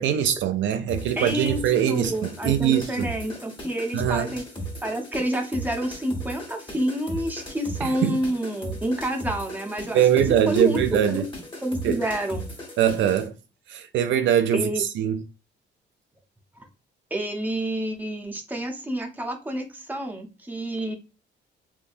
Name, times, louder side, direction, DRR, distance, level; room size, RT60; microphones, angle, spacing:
voice 1, 0.0-3.1 3.9-4.3 7.8-8.2 9.9-11.2 11.8-12.0 12.8-13.3 13.7-15.2, right 9 dB, 70° right, 0.4 m, -22 dB
sound 1, 0.9-13.3, right 1 dB, 25° left, 1.4 m, -37 dB
voice 2, 1.2-1.6 1.9-4.4 4.8-10.0 10.5-11.3 11.6-12.5 14.5-14.8 17.1-20.9, right 1 dB, 10° right, 0.8 m, -28 dB
3.3 x 2.7 x 2.6 m
cardioid pair, 90°, 20 cm